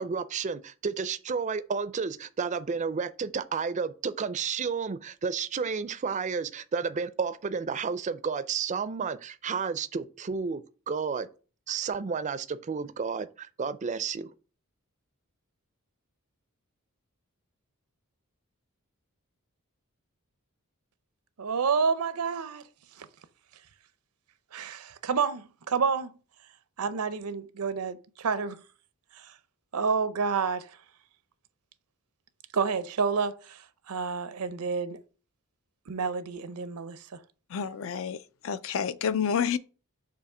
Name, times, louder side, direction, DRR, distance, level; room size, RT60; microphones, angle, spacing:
voice 1, 0.0-11.3 11.7-14.3, right 5 dB, 35° right, 0.4 m, -31 dB
voice 2, 21.4-22.6 23.0-23.1 24.5-26.1 26.8-28.6 29.2-29.3 29.7-30.7 32.5-35.0 35.9-37.2, right 5 dB, 85° right, 0.6 m, -29 dB
voice 3, 37.5-39.6, left 7 dB, 65° left, 0.4 m, -29 dB
6.8 x 2.8 x 4.8 m
head